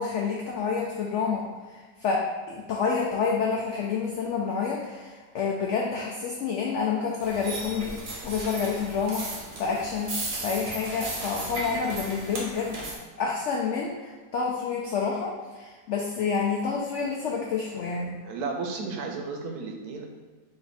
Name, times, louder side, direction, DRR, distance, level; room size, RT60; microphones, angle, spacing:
voice 1, 0.0-9.3 9.6-12.8 13.2-18.2, left 5 dB, 75° left, -1 dB, 0.6 m, -29 dB
sound 1, 7.2-13.0, right 2 dB, 50° right, 0.9 m, -36 dB
voice 2, 18.2-20.1, right 4 dB, 75° right, 2 dB, 1.1 m, -33 dB
4.2 x 2.6 x 4.0 m, 1.4 s
omnidirectional pair, 1.7 m